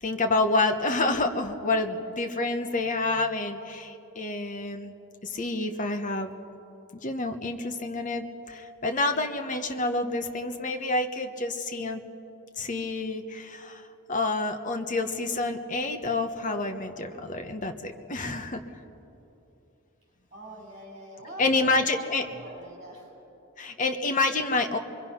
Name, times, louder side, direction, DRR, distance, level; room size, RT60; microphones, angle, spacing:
voice 1, 0.0-5.0 5.2-6.3 6.9-12.0 12.6-18.6 21.4-22.2 23.6-24.8, left 2 dB, 35° left, 6 dB, 1.1 m, -28 dB
voice 2, 2.8-3.2 20.3-23.1, right 1 dB, 30° right, -2 dB, 6.9 m, -44 dB
25.0 x 22.5 x 5.7 m, 3.0 s
head